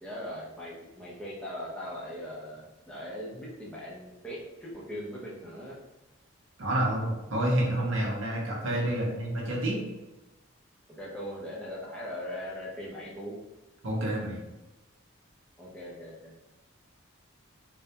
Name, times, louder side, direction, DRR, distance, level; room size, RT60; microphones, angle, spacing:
voice 1, 0.0-5.8 8.9-9.0 11.0-13.4 15.6-16.5, equal, 5° left, -6 dB, 0.5 m, -40 dB
voice 2, 6.6-9.8 13.8-14.4, right 1 dB, 65° right, -2 dB, 0.7 m, -28 dB
2.3 x 2.1 x 2.7 m, 1.0 s
head